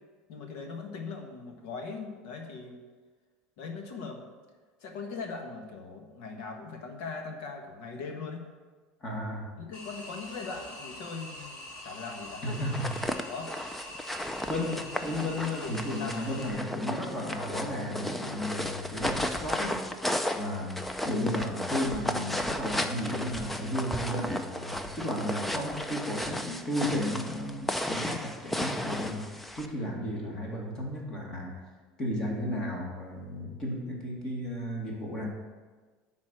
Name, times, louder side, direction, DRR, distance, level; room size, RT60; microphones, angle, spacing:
voice 1, 0.3-2.8 3.6-4.2 4.8-8.5 9.6-12.4 13.3-13.5 15.4-15.7 16.0-16.2, left 4 dB, 70° left, 3 dB, 1.6 m, -40 dB
voice 2, 9.0-9.5 12.4-13.1 14.5-19.8 20.3-31.6 32.0-35.3, left 1 dB, 25° left, -1 dB, 2.0 m, -34 dB
sound 1, 9.7-16.5, left 1 dB, 45° left, 2.2 m, -44 dB
sound 2, 12.6-29.7, left 1 dB, 5° left, 0.4 m, -34 dB
10.5 x 4.3 x 7.7 m, 1.4 s
cardioid pair, 165°, 3 cm